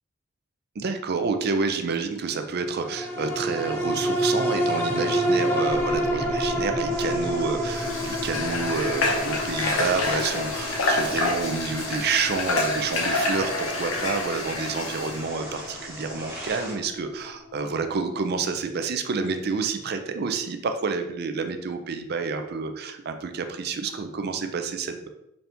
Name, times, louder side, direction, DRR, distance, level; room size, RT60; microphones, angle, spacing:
voice 1, 0.8-25.1, right 4 dB, 55° right, 7 dB, 0.4 m, -29 dB
sound 1, 2.8-17.5 17.9-18.0, equal, 10° left, 0.6 m, -29 dB
sound 2, 6.9-16.7, equal, 15° right, 1.1 m, -39 dB
Water / Water tap faucet, 7.7-15.2, left 2 dB, 90° left, 0.6 m, -28 dB
4.1 x 2.7 x 3.4 m, 0.85 s
head